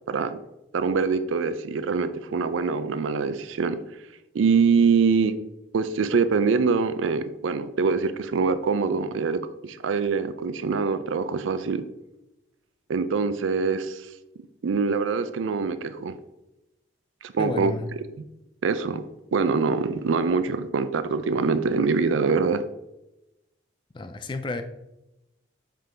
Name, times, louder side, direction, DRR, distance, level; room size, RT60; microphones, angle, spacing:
voice 1, 0.1-0.4 0.7-3.8 4.3-5.3 5.7-11.8 12.9-14.1 14.6-16.1 17.2-17.7 18.6-19.0 19.3-22.6, right 5 dB, 90° right, 12 dB, 0.4 m, -24 dB
voice 2, 17.4-17.9 23.9-24.6, left 3 dB, 25° left, 9 dB, 0.3 m, -31 dB
5.5 x 3.8 x 5.0 m, 0.92 s
head